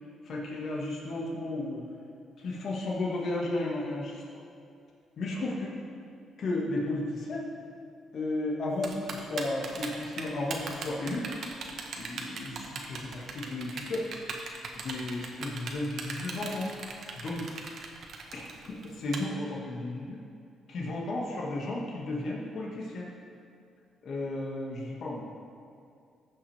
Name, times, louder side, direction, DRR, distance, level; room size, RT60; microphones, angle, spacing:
voice 1, 0.2-1.8 2.4-4.2 5.2-5.5 6.4-7.4 8.1-11.2 12.0-14.2 14.8-16.7 17.2-17.6 18.8-20.2 20.7-23.1 24.0-25.2, left 2 dB, 60° left, -3 dB, 1.8 m, -33 dB
Typing, 8.8-19.2, right 5 dB, 65° right, 1.1 m, -38 dB
15.0 x 6.1 x 3.5 m, 2.5 s
cardioid pair, 90°, 0 cm